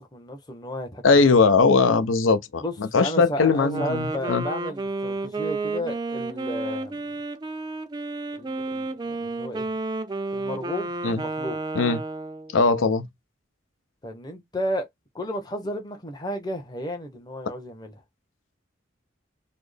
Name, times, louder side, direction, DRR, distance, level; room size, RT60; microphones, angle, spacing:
voice 1, 0.0-1.0 2.6-7.1 8.3-9.7 10.3-11.6 14.0-14.9 15.1-17.9, equal, 20° left, 0.8 m, -33 dB
voice 2, 1.0-4.4 11.0-11.2 11.7-12.0 12.5-13.1, left 4 dB, 80° left, 0.6 m, -20 dB
Wind instrument woodwind instrument, 3.6-12.5, right 2 dB, 20° right, 0.4 m, -31 dB
4.2 x 2.0 x 3.3 m
head